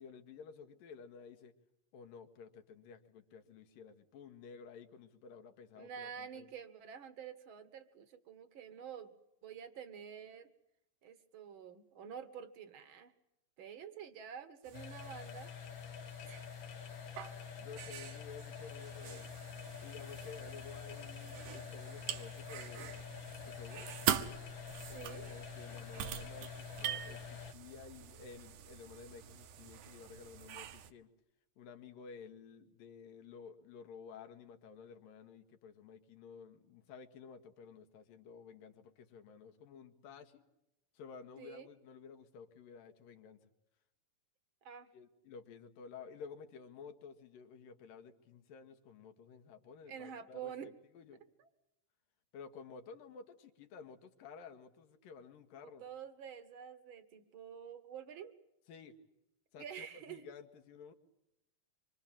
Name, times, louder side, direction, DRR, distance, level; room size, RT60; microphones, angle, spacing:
voice 1, 0.0-1.5 1.9-6.5 17.6-19.4 19.8-23.0 23.4-23.9 24.9-31.1 31.6-40.4 40.9-43.5 44.9-51.2 52.3-55.8 58.7-59.0 59.5-60.9, left 6 dB, 85° left, 5 dB, 3.4 m, -53 dB
voice 2, 5.8-9.1 9.4-10.5 11.0-13.1 13.6-15.5 16.2-16.5 24.9-25.2 41.4-41.7 44.6-44.9 49.9-50.7 51.4-51.5 55.6-58.3 59.6-60.3, right 8 dB, 50° right, 11 dB, 1.7 m, -48 dB
sound 1, 14.6-30.9, right 10 dB, 70° right, 2.6 m, -44 dB
sound 2, 14.7-27.5, left 8 dB, 65° left, 1.2 m, -47 dB
25.5 x 25.5 x 7.4 m, 0.89 s
omnidirectional pair, 4.0 m